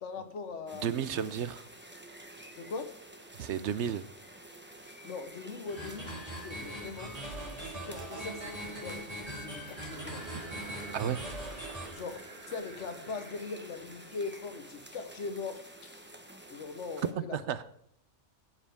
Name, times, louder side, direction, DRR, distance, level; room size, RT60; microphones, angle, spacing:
voice 1, 0.0-1.2 2.6-2.9 4.8-7.2 7.6-10.3 11.9-16.0 16.5-17.4, left 4 dB, 75° left, 1.4 m, -41 dB
sound 1, 0.7-17.1, right 1 dB, 10° right, 1.0 m, -51 dB
voice 2, 0.8-1.6 3.4-4.0 10.9-11.3 17.1-17.6, right 8 dB, 70° right, 0.9 m, -32 dB
sound 2, 5.7-11.9, right 1 dB, 30° right, 3.6 m, -41 dB
sound 3, 9.9-15.3, right 2 dB, 55° right, 1.7 m, -50 dB
16.5 x 7.6 x 3.5 m
omnidirectional pair, 1.2 m